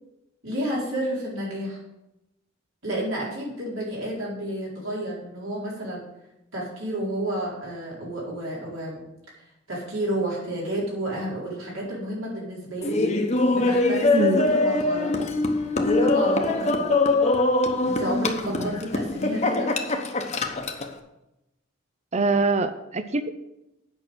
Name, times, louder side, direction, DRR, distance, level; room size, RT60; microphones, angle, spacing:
voice 1, 0.4-1.8 2.8-6.0 6.5-9.0 9.7-13.0 13.5-15.2 15.7-16.9 17.8-19.8, right 1 dB, 75° right, -4 dB, 4.3 m, -31 dB
Laughter, 12.8-20.9, left 2 dB, 35° left, 1.0 m, -23 dB
voice 2, 14.1-14.4 18.4-18.7 22.1-23.3, right 3 dB, 35° right, 11 dB, 0.5 m, -24 dB
8.9 x 5.8 x 7.8 m, 0.90 s
head